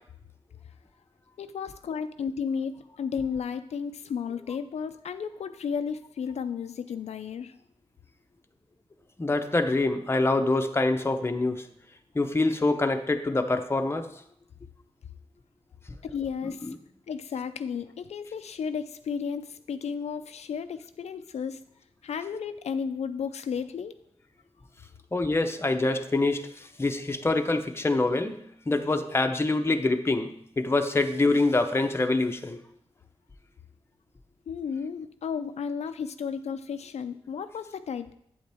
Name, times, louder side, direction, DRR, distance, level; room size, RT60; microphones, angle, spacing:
voice 1, 1.4-7.6 16.0-16.7 17.1-21.6 22.0-24.0 34.5-38.1, left 6 dB, 85° left, 9 dB, 0.4 m, -33 dB
voice 2, 9.2-11.6 12.1-14.1 16.6-16.8 25.1-32.6, left 2 dB, 25° left, 6 dB, 0.7 m, -25 dB
8.8 x 8.0 x 3.5 m, 0.72 s
wide cardioid pair, 115°, 11 cm